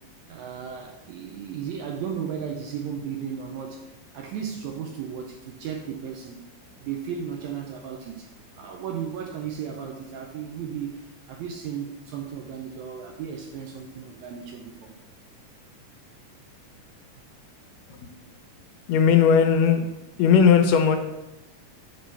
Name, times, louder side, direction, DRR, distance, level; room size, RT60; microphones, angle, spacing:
voice 1, 0.3-6.5 6.8-8.3 8.6-14.9, right 7 dB, 80° right, 3 dB, 1.7 m, -35 dB
voice 2, 18.9-19.9 20.2-21.0, left 7 dB, 85° left, 5 dB, 2.3 m, -17 dB
7.4 x 3.0 x 5.5 m, 0.95 s
omnidirectional pair, 3.7 m